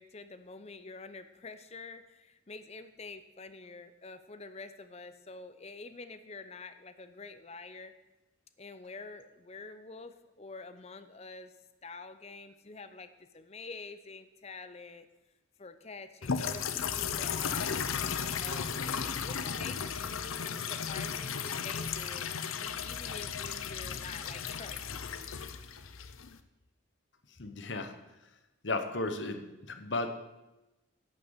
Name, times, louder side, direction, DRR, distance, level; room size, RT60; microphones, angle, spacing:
voice 1, 0.0-7.9 8.6-11.5 11.8-15.1 15.6-17.9 18.4-25.3, left 3 dB, 30° left, 11 dB, 0.6 m, -47 dB
sound 1, 16.2-26.4, left 7 dB, 90° left, 0.7 m, -35 dB
voice 2, 27.4-27.9 28.6-29.4 29.7-30.2, left 2 dB, 60° left, 7 dB, 1.1 m, -34 dB
11.0 x 6.9 x 7.2 m, 1.0 s
head